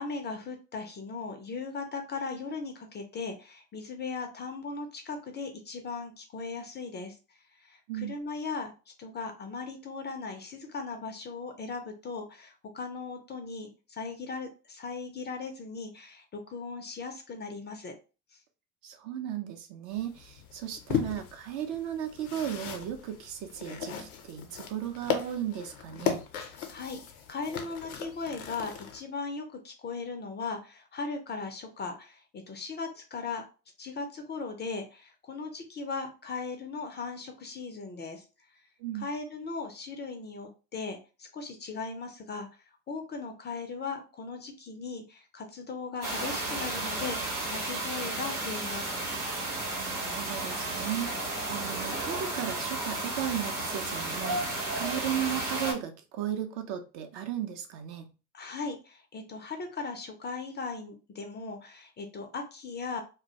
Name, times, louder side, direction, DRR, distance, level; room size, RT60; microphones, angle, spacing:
voice 1, 0.0-8.7 9.0-17.9 18.3-18.4 26.3-27.0 27.3-33.4 33.8-38.3 38.5-38.6 38.9-48.9 58.3-63.0, left 4 dB, 25° left, 5 dB, 0.4 m, -38 dB
voice 2, 18.8-26.2 38.8-39.1 49.8-58.1, right 10 dB, 55° right, 6 dB, 0.6 m, -35 dB
sound 1, 19.9-29.0, left 8 dB, 75° left, 0.6 m, -37 dB
sound 2, 46.0-55.7, right 2 dB, 85° right, 0.9 m, -33 dB
2.2 x 2.1 x 2.7 m, 0.32 s
figure-of-eight pair, 55°, 44 cm